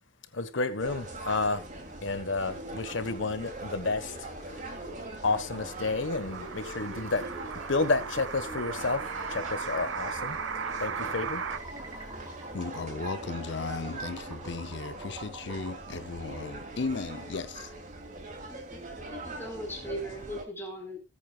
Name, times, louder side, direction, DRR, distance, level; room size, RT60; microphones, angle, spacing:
voice 1, 0.3-1.7 2.0-4.8 5.2-7.3 7.7-10.4 10.8-11.4, left 3 dB, 80° left, 1.3 m, -31 dB
sound 1, 0.8-20.4, right 2 dB, 40° right, 2.8 m, -41 dB
sound 2, 5.5-11.6, right 6 dB, 90° right, 0.9 m, -37 dB
sound 3, 8.8-17.0, right 1 dB, 15° right, 3.5 m, -49 dB
voice 2, 12.5-17.7, left 4 dB, 65° left, 0.6 m, -36 dB
voice 3, 18.5-21.0, equal, 10° left, 4.5 m, -39 dB
20.0 x 8.7 x 2.4 m
head